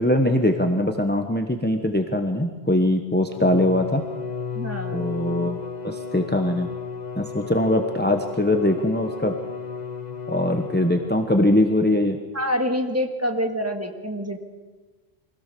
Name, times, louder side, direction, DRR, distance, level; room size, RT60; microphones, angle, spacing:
voice 1, 0.0-4.0 4.9-6.7 7.2-9.3 10.3-12.2, left 1 dB, 10° left, 5 dB, 1.1 m, -22 dB
Bowed string instrument, 3.2-11.5, left 5 dB, 45° left, 0.9 m, -34 dB
voice 2, 4.5-5.1 12.3-14.4, equal, 15° right, 3 dB, 1.8 m, -26 dB
24.5 x 17.0 x 6.8 m, 1.3 s
omnidirectional pair, 1.1 m